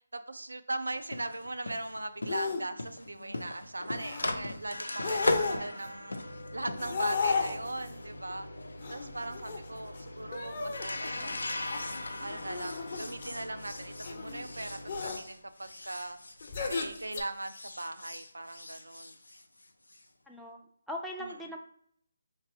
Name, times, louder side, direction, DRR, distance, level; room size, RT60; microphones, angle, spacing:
voice 1, 0.1-6.2 6.5-8.5 8.9-11.5 12.2-16.2 16.7-19.1 21.2-21.3, right 2 dB, 85° right, 9 dB, 0.4 m, -39 dB
sound 1, 0.9-17.1 17.4-20.0, left 1 dB, 85° left, 0.5 m, -38 dB
sound 2, 2.3-2.6 3.0-3.4 4.0-4.3 4.9-5.9 6.8-7.9 8.8-10.0 10.3-13.4 14.0-14.4 14.9-15.2 16.4-17.2, left 4 dB, 45° left, 0.7 m, -34 dB
voice 2, 20.3-20.6 20.9-21.6, equal, ahead, -2 dB, 0.3 m, -39 dB
4.2 x 3.3 x 2.7 m, 0.64 s
figure-of-eight pair, 150°, 0 cm